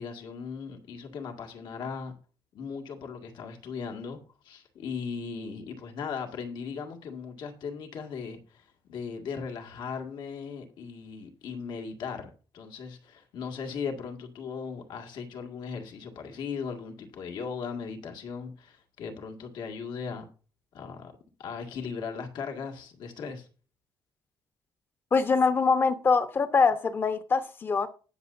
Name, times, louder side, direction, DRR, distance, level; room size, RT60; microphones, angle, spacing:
voice 1, 0.0-2.1 2.5-20.3 20.7-21.1 21.4-23.5, left 5 dB, 75° left, 2.0 m, -38 dB
voice 2, 25.1-27.9, left 4 dB, 30° left, 0.9 m, -24 dB
19.5 x 6.8 x 2.6 m
cardioid pair, 175°, 8 cm